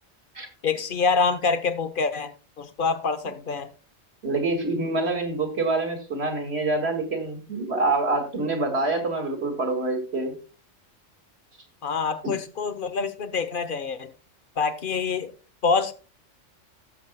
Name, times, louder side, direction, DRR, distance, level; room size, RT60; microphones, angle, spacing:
voice 1, 0.6-3.7 11.8-14.1 14.6-15.3 15.6-15.9, left 5 dB, 45° left, 1.0 m, -26 dB
voice 2, 4.2-10.3 12.2-12.4, right 2 dB, 55° right, 2.4 m, -26 dB
17.5 x 7.2 x 2.2 m
omnidirectional pair, 1.3 m